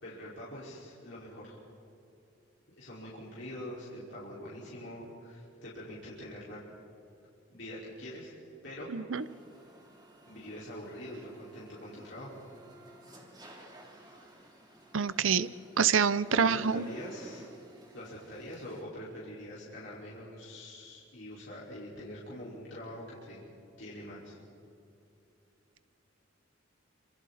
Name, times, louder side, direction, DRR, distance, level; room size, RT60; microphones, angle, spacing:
voice 1, 0.0-1.6 2.8-6.6 7.5-8.3 8.6-8.9 10.3-12.3 16.3-17.5 17.9-23.4 23.8-24.4, equal, 65° left, -8 dB, 5.2 m, -44 dB
voice 2, 8.9-9.2 14.9-15.5 15.8-16.9, right 6 dB, 85° right, 15 dB, 0.7 m, -26 dB
sound 1, 9.1-18.8, right 1 dB, 20° right, 3.1 m, -54 dB
27.5 x 27.0 x 4.3 m, 2.7 s
head